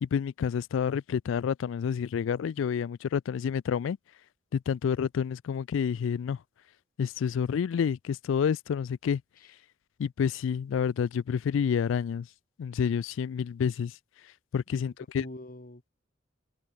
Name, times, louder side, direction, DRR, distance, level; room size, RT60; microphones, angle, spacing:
voice 1, 0.0-4.0 4.5-6.4 7.0-9.2 10.0-12.3 12.6-13.9 14.5-15.2, left 7 dB, 70° left, 0.3 m, -29 dB
voice 2, 14.7-15.9, left 1 dB, 45° left, 2.0 m, -45 dB
head